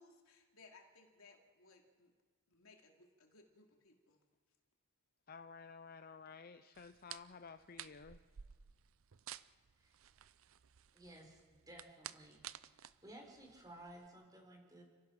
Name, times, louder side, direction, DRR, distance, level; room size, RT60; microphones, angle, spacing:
voice 1, 0.0-2.1 2.5-4.2, left 3 dB, 75° left, 2 dB, 2.7 m, -63 dB
voice 2, 5.3-8.2, left 5 dB, 45° left, 10 dB, 0.5 m, -53 dB
sound 1, 6.7-14.1, right 11 dB, 70° right, 0.5 m, -54 dB
voice 3, 10.9-12.5 12.7-14.8, right 1 dB, 15° right, 1 dB, 4.3 m, -56 dB
30.0 x 15.5 x 5.9 m, 1.5 s
head